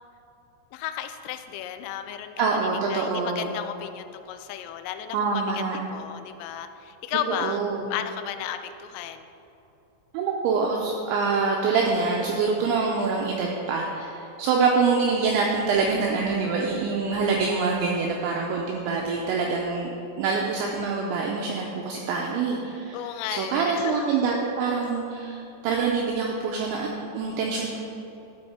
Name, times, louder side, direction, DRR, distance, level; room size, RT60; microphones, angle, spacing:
voice 1, 0.7-7.6 7.9-9.3 22.9-24.1, left 10 dB, 85° left, 8 dB, 3.0 m, -34 dB
voice 2, 2.4-3.5 5.1-5.8 7.4-7.9 10.1-19.9 20.2-23.0 23.3-27.8, right 4 dB, 85° right, 0 dB, 2.6 m, -25 dB
12.5 x 5.3 x 4.3 m, 2.8 s
omnidirectional pair, 5.9 m